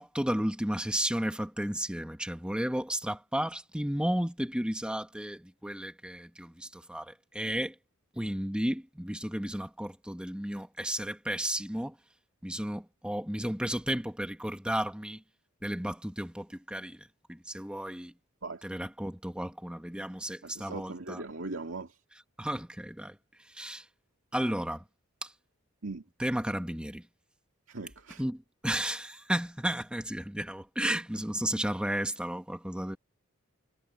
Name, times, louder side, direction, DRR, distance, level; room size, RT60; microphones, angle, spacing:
voice 1, 0.0-7.7 8.2-11.9 12.4-15.2 15.6-17.0 17.3-18.1 18.6-21.2 22.4-23.1 23.6-23.8 24.3-24.8 25.2-25.3 26.2-27.0 28.2-33.0, right 1 dB, 5° right, 1.4 m, -33 dB
voice 2, 20.4-22.0 25.8-26.0 27.7-28.2, right 3 dB, 65° right, 2.4 m, -39 dB
head